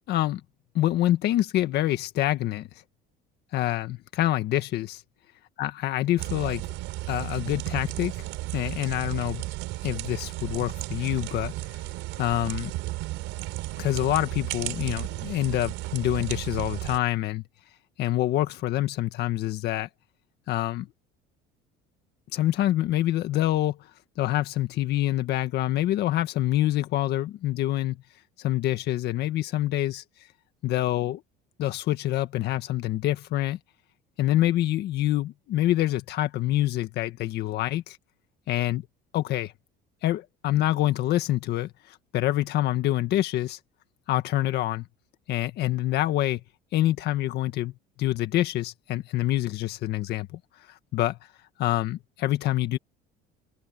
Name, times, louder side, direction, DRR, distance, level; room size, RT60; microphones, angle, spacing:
voice 1, 0.1-0.4 0.7-2.7 3.5-5.0 5.6-6.6 7.1-8.3 8.5-9.4 9.8-11.5 12.2-12.7 13.8-17.4 18.0-19.9 20.5-20.9 22.3-23.9 24.2-28.0 28.4-30.0 30.6-31.2 31.6-33.6 34.2-38.0 38.5-38.8 39.1-39.5 40.0-43.6 44.1-44.9 45.3-46.4 46.7-47.7 48.0-50.4 50.7-51.2 51.6-52.8, left 14 dB, 55° left, 1.7 m, -26 dB
sound 1, 6.2-17.0, right 19 dB, 70° right, 4.5 m, -34 dB
cardioid pair, 140°, 20 cm